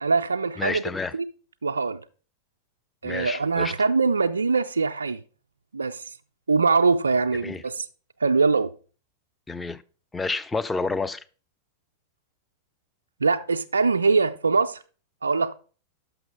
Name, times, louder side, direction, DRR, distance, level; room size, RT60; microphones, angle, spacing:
voice 1, 0.0-0.8 1.1-1.3 1.6-2.0 3.0-5.2 5.7-6.0 6.5-7.8 8.2-8.7 13.2-14.8 15.2-15.5, right 4 dB, 75° right, 0.3 m, -22 dB
voice 2, 0.6-1.2 3.0-3.7 7.4-7.6 9.5-9.8 10.1-11.2, left 3 dB, 10° left, 0.4 m, -29 dB
6.0 x 6.0 x 4.9 m
figure-of-eight pair, 90°, 0 cm